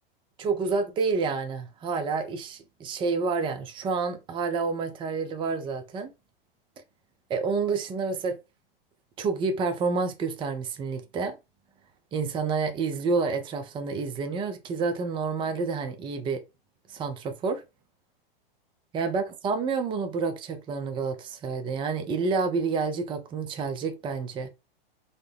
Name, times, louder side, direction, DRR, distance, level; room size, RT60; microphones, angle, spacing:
voice 1, 0.4-6.1 7.3-8.4 9.2-11.4 12.1-16.4 16.9-17.6 18.9-24.5, right 4 dB, 15° right, 0.4 m, -29 dB
3.9 x 2.0 x 3.3 m
hypercardioid pair, 115°, 29 cm